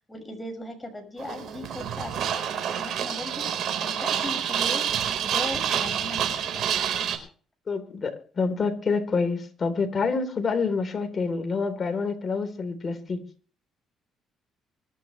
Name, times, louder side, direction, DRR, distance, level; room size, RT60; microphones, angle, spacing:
voice 1, 0.1-3.5 3.8-4.9 5.2-6.7, left 1 dB, 10° left, 5.9 m, -38 dB
sound 1, 1.2-7.2, right 8 dB, 65° right, 4.3 m, -28 dB
voice 2, 7.7-13.2, left 4 dB, 35° left, 3.5 m, -27 dB
24.5 x 12.0 x 3.2 m
cardioid pair, 110°, 0 cm